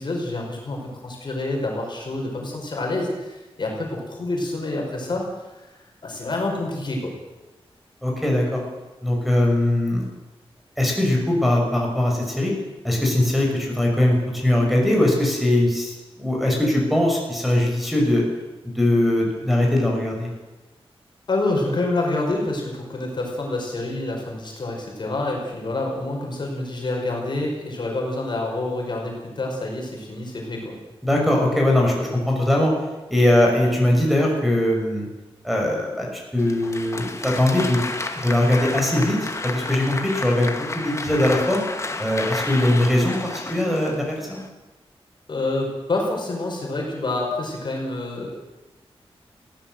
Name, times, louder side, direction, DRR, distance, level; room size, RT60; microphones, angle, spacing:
voice 1, 0.0-7.1 21.3-30.8 45.3-48.3, left 2 dB, 50° left, 0 dB, 5.1 m, -27 dB
voice 2, 8.0-8.6 9.0-10.0 10.8-12.5 12.8-18.2 18.6-20.3 31.0-32.7 33.1-35.1 35.4-36.1 36.3-37.8 38.1-41.6 42.0-44.4, left 1 dB, ahead, -1 dB, 6.0 m, -21 dB
Applause, 36.4-44.5, left 2 dB, 30° left, 1.9 m, -31 dB
21.5 x 16.0 x 7.9 m, 1.1 s
wide cardioid pair, 150°, 10 cm